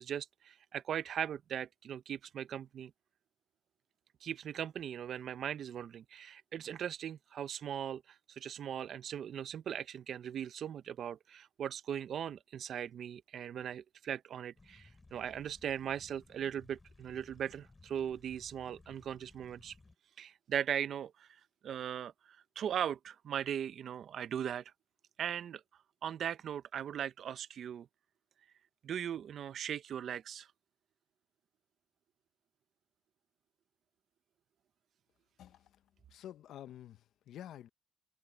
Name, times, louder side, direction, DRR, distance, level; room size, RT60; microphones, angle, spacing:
voice 1, 0.0-2.9 4.2-19.7 20.2-24.7 25.2-25.6 26.0-27.9 28.8-30.5, right 9 dB, 60° right, 0.9 m, -39 dB
sound 1, 14.6-20.0, left 3 dB, 20° left, 3.5 m, -60 dB
voice 2, 35.4-35.8 36.1-37.7, left 11 dB, 75° left, 0.8 m, -50 dB
cardioid pair, 95°, 0 cm